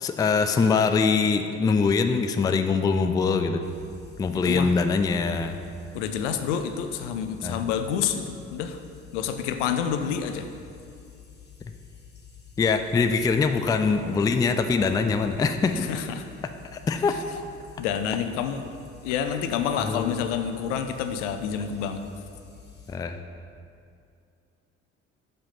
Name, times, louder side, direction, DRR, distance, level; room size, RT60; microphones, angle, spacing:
voice 1, 0.0-3.6 4.2-5.6 7.4-7.7 12.6-15.9 16.7-17.2 19.8-20.2 22.9-23.2, left 4 dB, 10° left, 8 dB, 0.3 m, -23 dB
sound 1, 3.6-23.0, left 8 dB, 25° left, 1.2 m, -49 dB
voice 2, 4.5-4.8 5.9-8.8 9.1-10.5 15.8-16.2 17.1-17.2 17.8-18.7 19.0-22.0, left 8 dB, 70° left, 8 dB, 0.6 m, -28 dB
5.7 x 5.2 x 5.6 m, 2.4 s
figure-of-eight pair, 50°, 37 cm